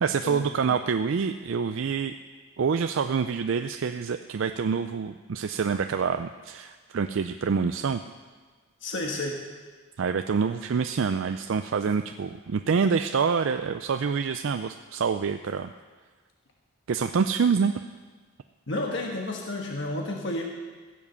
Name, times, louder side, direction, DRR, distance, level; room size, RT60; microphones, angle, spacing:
voice 1, 0.0-2.1 2.6-8.0 10.0-15.7 16.9-17.8, right 5 dB, 65° right, 8 dB, 0.4 m, -26 dB
voice 2, 8.8-9.4 18.7-20.4, left 1 dB, 55° left, 0 dB, 1.3 m, -31 dB
15.5 x 7.4 x 6.9 m, 1.4 s
head